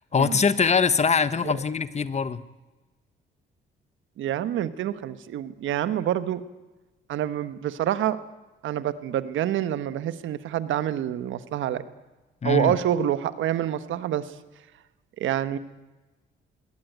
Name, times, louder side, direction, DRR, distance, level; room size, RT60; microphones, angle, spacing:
voice 1, 0.1-2.4 12.4-12.7, left 5 dB, 35° left, 14 dB, 1.2 m, -22 dB
voice 2, 4.2-6.4 7.1-8.2 8.6-11.9 12.4-14.3 15.2-15.6, right 11 dB, 80° right, 13 dB, 1.4 m, -27 dB
21.5 x 17.5 x 9.4 m, 1.1 s
cardioid pair, 90°, 20 cm